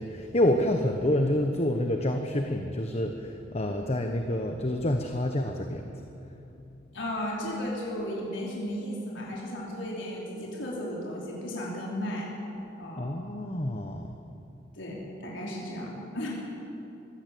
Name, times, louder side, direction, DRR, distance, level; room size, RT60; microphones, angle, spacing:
voice 1, 0.0-6.0 13.0-14.1, left 1 dB, 35° left, 5 dB, 1.2 m, -28 dB
voice 2, 6.9-12.3 12.7-13.1 14.8-16.3, equal, 75° left, -4 dB, 4.8 m, -35 dB
23.0 x 15.5 x 8.6 m, 2.8 s
head